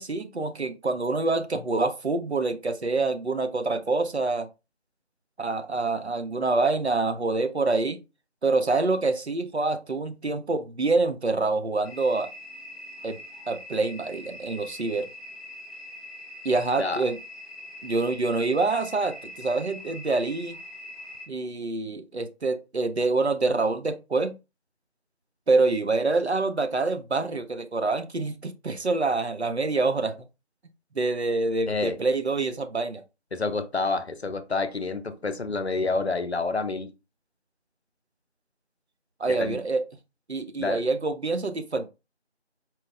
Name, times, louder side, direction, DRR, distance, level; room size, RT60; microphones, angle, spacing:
voice 1, 0.0-4.5 5.4-8.0 8.4-12.3 13.0-13.2 13.5-15.1 16.4-17.2 17.8-20.5 21.3-24.4 25.5-30.2 30.9-33.0 39.2-39.8 40.3-41.9, right 3 dB, 70° right, 0.7 m, -26 dB
sound 1, 11.8-21.3, left 1 dB, ahead, 0.6 m, -43 dB
voice 2, 31.7-32.0 33.3-36.9 39.3-39.6 40.6-40.8, left 3 dB, 70° left, 0.7 m, -28 dB
4.5 x 2.1 x 3.5 m
figure-of-eight pair, 175°, 34 cm